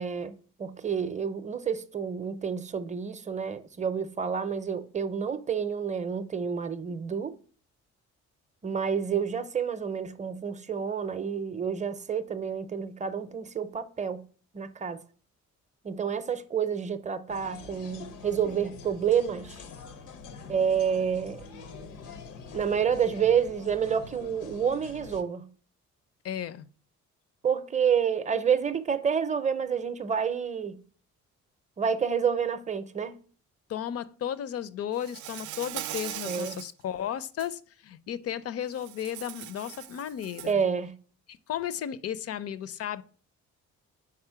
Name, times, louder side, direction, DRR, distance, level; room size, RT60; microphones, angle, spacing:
voice 1, 0.0-7.3 8.6-14.2 14.5-15.0 15.8-19.6 20.5-21.4 22.5-25.5 27.4-30.8 31.8-33.2 36.2-36.6 40.5-40.9, right 7 dB, 25° right, 0.6 m, -29 dB
sound 1, 17.3-25.2, left 5 dB, 85° left, 0.8 m, -45 dB
voice 2, 26.2-26.7 33.7-40.6 41.3-43.0, left 10 dB, 50° left, 0.5 m, -34 dB
Insect, 35.0-36.7 37.2-37.5 38.7-40.6, right 13 dB, 75° right, 0.4 m, -40 dB
4.9 x 4.2 x 5.6 m
cardioid pair, 90°, 30 cm